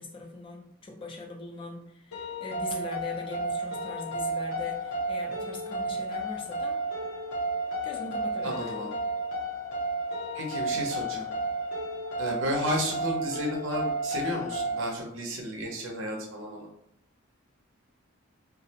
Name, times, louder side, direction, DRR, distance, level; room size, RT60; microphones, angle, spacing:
voice 1, 0.0-6.8 7.8-8.8, left 2 dB, 25° left, 2 dB, 0.3 m, -40 dB
sound 1, 2.1-14.9, right 1 dB, 70° left, 0.5 m, -32 dB
voice 2, 8.4-8.9 10.3-11.3 12.2-16.7, equal, 65° right, 0 dB, 0.6 m, -32 dB
2.4 x 2.0 x 2.7 m, 0.75 s
head